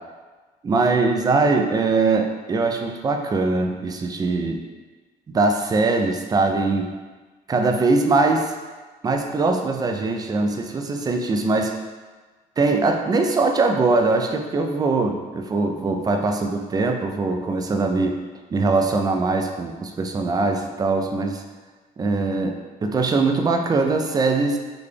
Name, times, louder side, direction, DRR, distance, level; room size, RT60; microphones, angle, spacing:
voice 1, 0.6-4.6 5.3-6.9 7.5-8.5 9.0-11.7 12.6-18.2 18.5-21.4 22.0-24.6, right 3 dB, 25° right, 4 dB, 0.3 m, -21 dB
4.0 x 2.2 x 3.2 m, 1.3 s
cardioid pair, 110°, 17 cm